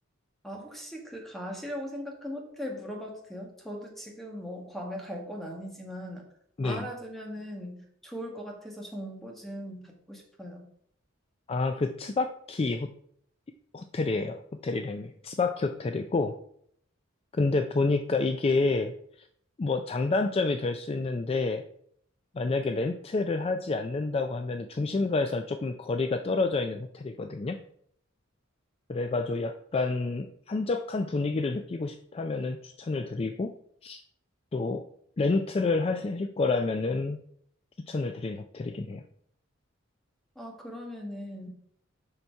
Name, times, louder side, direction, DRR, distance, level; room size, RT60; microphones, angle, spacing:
voice 1, 0.4-6.3 6.6-10.7 40.3-41.5, equal, ahead, 0 dB, 1.5 m, -39 dB
voice 2, 11.5-12.9 13.7-16.4 17.3-18.9 19.6-21.6 22.3-27.6 28.9-33.5 33.8-34.0 34.5-34.8 35.2-37.2 37.9-39.0, left 3 dB, 30° left, 7 dB, 0.4 m, -29 dB
6.9 x 5.8 x 4.6 m, 0.67 s
head